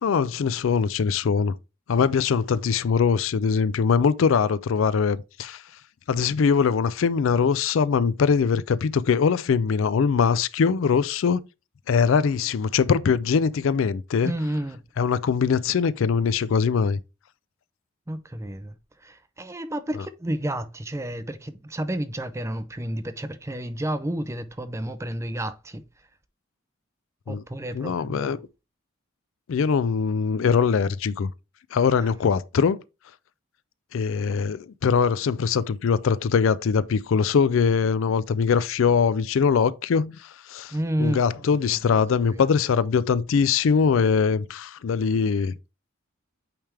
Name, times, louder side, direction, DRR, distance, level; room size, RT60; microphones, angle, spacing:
voice 1, 0.0-1.5 1.9-5.6 6.1-11.4 11.9-14.3 15.0-17.0 27.3-27.4 27.7-28.4 29.5-31.3 31.7-32.8 33.9-40.7 41.0-45.5, left 6 dB, 70° left, 0.4 m, -22 dB
voice 2, 14.2-14.8 18.1-26.1 27.3-28.4 32.0-32.2 40.7-42.5, right 1 dB, 15° right, 0.5 m, -31 dB
8.7 x 3.4 x 3.4 m
head